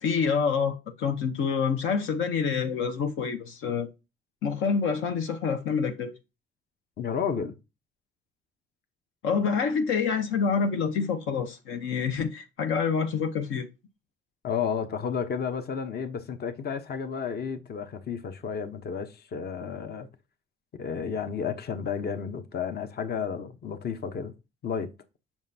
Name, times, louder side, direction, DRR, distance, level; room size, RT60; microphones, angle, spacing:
voice 1, 0.0-3.9 4.4-6.1 9.2-13.7, left 6 dB, 80° left, 0.9 m, -27 dB
voice 2, 7.0-7.5 14.4-20.1 20.7-24.3 24.6-24.9, left 6 dB, 55° left, 1.0 m, -32 dB
7.2 x 6.0 x 2.8 m
cardioid pair, 90°, 20 cm